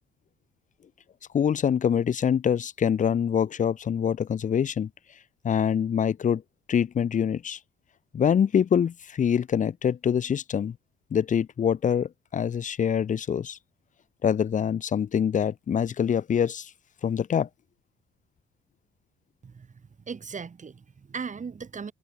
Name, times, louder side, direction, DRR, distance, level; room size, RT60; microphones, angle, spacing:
voice 1, 1.3-4.9 5.4-6.4 6.7-7.6 8.1-10.7 11.1-13.6 14.2-16.7 17.0-17.5, left 8 dB, 40° left, 0.7 m, -25 dB
voice 2, 20.1-21.9, right 5 dB, 40° right, 6.1 m, -37 dB
cardioid pair, 90°, 20 cm